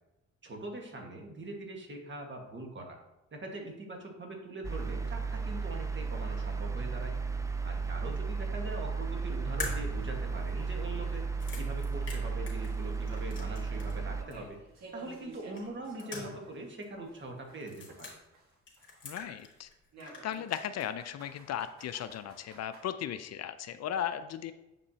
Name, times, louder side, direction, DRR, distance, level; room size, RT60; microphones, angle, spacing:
voice 1, 0.4-3.0 3.3-7.1 7.6-11.3 11.6-14.6 14.9-18.1, right 2 dB, 40° right, 2 dB, 1.5 m, -42 dB
sound 1, 4.6-14.2, right 4 dB, 10° right, 0.4 m, -34 dB
sound 2, 7.6-7.7 8.2-8.3 8.7-8.8 9.3-11.8 12.1-16.7 17.0-19.1 19.9-22.8, right 2 dB, 60° right, 1.7 m, -54 dB
sound 3, 9.6-14.0 14.3-14.4 15.6-16.6 16.8-16.9 17.6-18.1 18.7-19.7 20.0-20.9, left 3 dB, 40° left, 2.3 m, -43 dB
voice 2, 19.0-19.7 20.0-24.5, left 9 dB, 60° left, 11 dB, 0.4 m, -36 dB
7.6 x 5.2 x 2.8 m, 0.95 s
cardioid pair, 90°, 30 cm